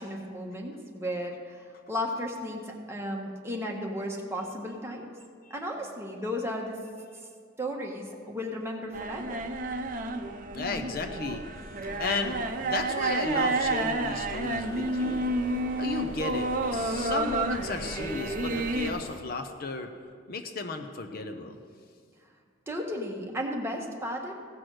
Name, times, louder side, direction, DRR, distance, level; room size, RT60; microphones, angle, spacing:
voice 1, 0.0-5.1 5.5-6.8 7.6-9.4 22.7-24.3, equal, 15° right, 0 dB, 1.3 m, -34 dB
sound 1, 8.9-18.9, right 2 dB, 45° right, 0.7 m, -30 dB
voice 2, 10.5-11.4 12.0-15.2 15.8-19.9 20.3-21.6, left 3 dB, 50° left, 6 dB, 0.7 m, -34 dB
sound 2, 11.8-19.2, left 2 dB, 30° left, 1.1 m, -46 dB
16.0 x 6.1 x 6.4 m, 2.1 s
head